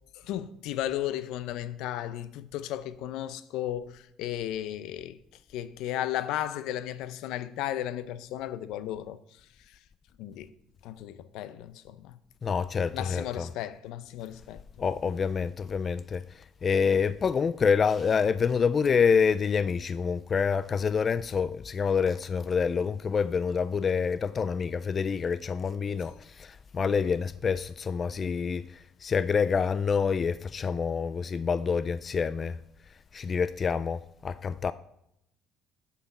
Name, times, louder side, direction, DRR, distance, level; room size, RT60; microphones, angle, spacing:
voice 1, 0.1-5.2 5.5-9.2 10.2-10.5 10.8-12.2 12.9-14.6, left 12 dB, 75° left, 0.6 m, -34 dB
voice 2, 12.4-13.5 14.8-16.3 16.6-28.7 29.0-32.6 33.1-34.7, left 6 dB, 30° left, 0.3 m, -27 dB
8.3 x 8.2 x 5.4 m
cardioid pair, 140°, 0 cm